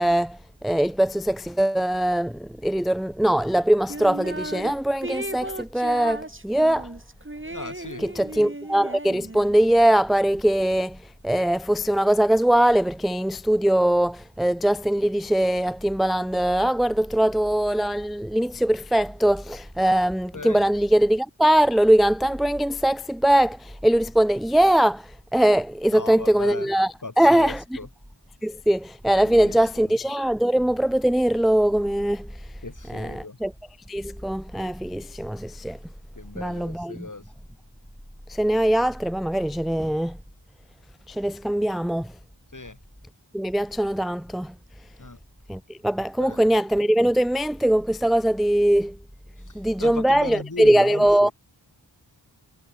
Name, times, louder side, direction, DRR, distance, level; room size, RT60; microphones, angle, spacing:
voice 1, 0.0-7.0 8.0-11.0 11.2-27.8 28.4-32.3 32.9-33.5 33.9-35.8 36.3-37.1 38.3-40.2 41.1-42.1 43.3-44.5 45.5-49.0 49.5-51.3, right 1 dB, ahead, 0.5 m, -21 dB
sound 1, 3.9-4.7 5.0-9.7, right 2 dB, 25° right, 3.7 m, -35 dB
voice 2, 7.5-8.1 20.3-20.6 25.9-26.7 27.0-27.9 29.2-29.9 32.6-33.4 36.1-37.2 42.5-42.8 45.0-45.2 46.2-46.5 49.4-51.3, left 3 dB, 40° left, 3.0 m, -37 dB
wide cardioid pair, 65°, 46 cm